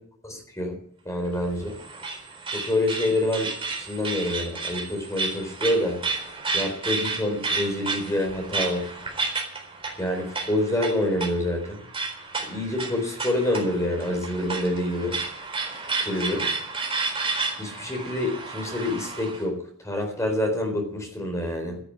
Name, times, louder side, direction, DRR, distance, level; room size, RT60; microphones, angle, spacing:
voice 1, 0.2-0.7 1.0-1.8 2.5-3.5 3.9-6.0 6.5-8.9 10.0-11.8 12.5-15.2 16.0-16.5 17.6-19.6 19.8-21.8, left 1 dB, 15° left, 2 dB, 4.1 m, -27 dB
sound 1, 1.2-19.4, right 3 dB, 25° right, 4.3 m, -32 dB
12.5 x 11.0 x 9.7 m, 0.66 s
head